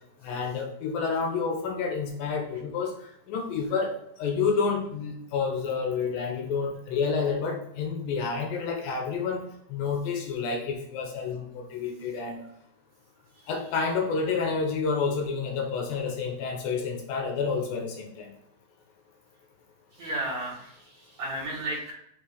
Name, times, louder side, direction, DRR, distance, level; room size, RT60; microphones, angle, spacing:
voice 1, 0.2-9.4 9.7-12.4 13.5-18.4, left 5 dB, 75° left, 2 dB, 2.6 m, -29 dB
voice 2, 20.0-21.9, right 1 dB, 55° right, -5 dB, 3.2 m, -33 dB
6.0 x 3.4 x 4.9 m, 0.73 s
omnidirectional pair, 4.3 m